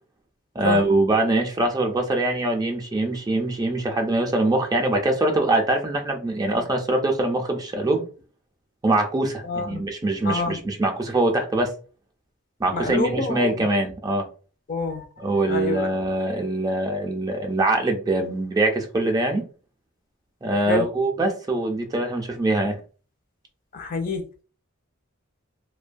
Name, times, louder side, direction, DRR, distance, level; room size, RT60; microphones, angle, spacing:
voice 1, 0.6-8.0 8.8-11.7 12.6-14.3 15.2-19.4 20.4-22.8, right 2 dB, 20° right, 0.4 m, -23 dB
voice 2, 9.4-9.8 10.2-10.6 12.7-13.7 14.7-15.0 15.5-15.9 20.7-20.9 23.7-24.4, left 3 dB, 45° left, 0.5 m, -27 dB
2.5 x 2.2 x 2.5 m
head